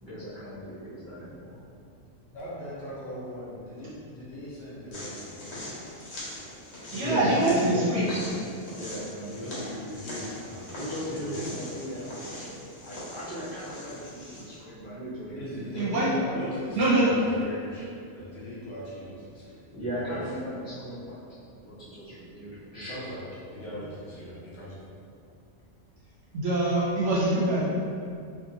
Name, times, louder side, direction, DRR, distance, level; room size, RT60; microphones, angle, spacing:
voice 1, 0.0-1.6 7.0-8.4 8.7-9.4 10.8-16.3 16.6-16.7 19.7-21.2 21.6-23.0, equal, 40° right, -13 dB, 0.4 m, -37 dB
voice 2, 2.3-5.7 9.3-10.8 11.1-11.4 15.4-20.2 22.8-24.8, equal, 60° left, -8 dB, 0.8 m, -40 dB
sound 1, 4.9-14.6, left 1 dB, 80° left, 1.2 m, -41 dB
voice 3, 6.9-8.0 15.8-16.1 16.8-17.1 26.3-27.6, right 2 dB, 65° right, -7 dB, 0.8 m, -24 dB
2.7 x 2.3 x 2.6 m, 2.4 s
omnidirectional pair, 1.4 m